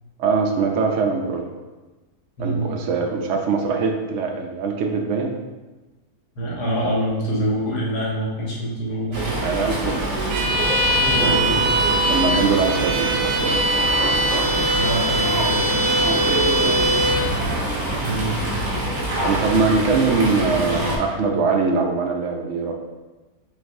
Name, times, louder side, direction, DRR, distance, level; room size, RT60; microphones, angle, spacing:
voice 1, 0.2-1.5 2.4-5.4 9.4-10.1 10.3-10.5 11.2-11.4 12.1-13.7 16.0-16.9 19.2-22.7, right 4 dB, 65° right, 2 dB, 0.7 m, -22 dB
voice 2, 2.4-2.7 6.4-9.4 10.9-11.6 14.7-15.7 18.0-18.4, right 1 dB, 75° left, -4 dB, 1.7 m, -25 dB
Fowl, 9.1-21.0, right 1 dB, 50° right, 1.2 m, -25 dB
Bowed string instrument, 10.3-17.3, right 1 dB, 90° right, 1.2 m, -22 dB
5.2 x 3.2 x 2.6 m, 1.2 s
omnidirectional pair, 1.7 m